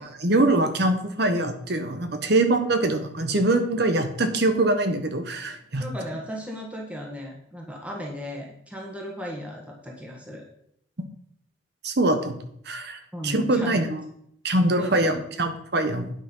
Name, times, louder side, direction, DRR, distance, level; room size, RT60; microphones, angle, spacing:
voice 1, 0.0-5.8 11.8-12.4 12.7-14.0 14.4-16.1, right 2 dB, 55° right, 7 dB, 1.2 m, -23 dB
voice 2, 5.7-10.4 13.1-13.8 14.8-15.2, equal, 5° right, -1 dB, 1.5 m, -36 dB
9.5 x 5.9 x 5.6 m, 0.71 s
head